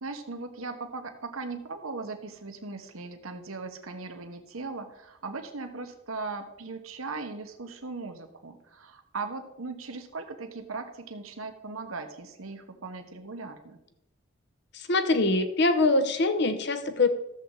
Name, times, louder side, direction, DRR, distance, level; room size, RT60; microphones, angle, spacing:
voice 1, 0.0-13.8, right 3 dB, 85° right, 6 dB, 1.2 m, -38 dB
voice 2, 14.7-17.1, left 2 dB, 55° left, 9 dB, 0.9 m, -24 dB
13.5 x 7.5 x 3.9 m, 0.87 s
head